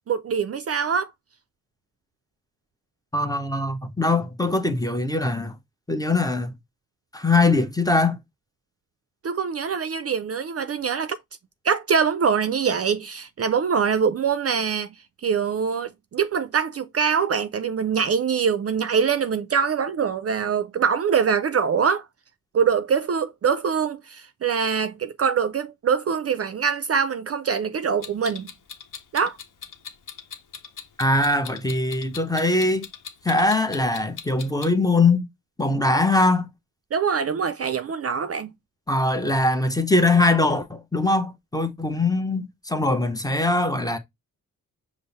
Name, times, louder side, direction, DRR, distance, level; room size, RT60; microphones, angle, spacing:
voice 1, 0.1-1.1 9.2-11.2 11.6-15.0 15.2-22.0 22.5-28.5 29.1-29.4 36.9-38.5, right 6 dB, 45° right, 0.4 m, -24 dB
voice 2, 3.1-5.5 5.9-6.5 7.1-8.2 31.0-32.9 33.2-35.3 35.6-36.5 38.9-44.0, left 2 dB, 10° left, 0.7 m, -22 dB
Clock, 28.0-34.7, left 7 dB, 65° left, 0.8 m, -39 dB
5.3 x 2.0 x 4.0 m
cardioid pair, 80°, 34 cm